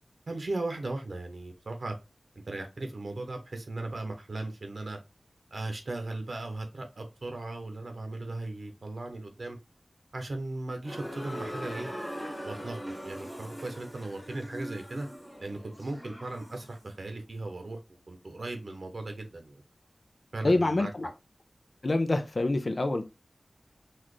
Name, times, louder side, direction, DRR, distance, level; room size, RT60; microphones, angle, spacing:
voice 1, 0.3-2.0 2.5-5.0 5.5-9.6 10.1-11.9 12.4-15.1 15.4-17.8 18.1-19.6 20.3-20.9, right 2 dB, 70° right, 0.8 m, -37 dB
sound 1, 10.8-16.7, equal, ahead, 1.6 m, -41 dB
voice 2, 20.4-21.1 21.8-23.0, left 2 dB, 55° left, 0.6 m, -26 dB
4.1 x 2.5 x 3.1 m
wide cardioid pair, 55°, 0 cm